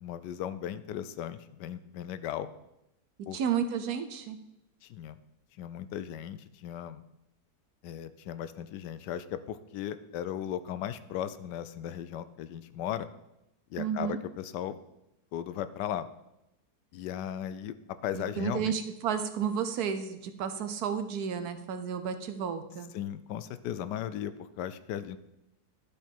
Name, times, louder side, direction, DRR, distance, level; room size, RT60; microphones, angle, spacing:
voice 1, 0.0-2.5 3.3-3.4 4.8-5.2 5.6-7.0 7.8-13.1 13.7-14.8 15.3-16.1 16.9-17.7 18.0-18.7 22.9-25.2, left 10 dB, 80° left, 13 dB, 1.2 m, -36 dB
voice 2, 3.3-4.4 13.8-14.2 18.1-22.9, right 7 dB, 70° right, 9 dB, 1.1 m, -32 dB
12.0 x 5.0 x 4.4 m, 0.88 s
omnidirectional pair, 1.9 m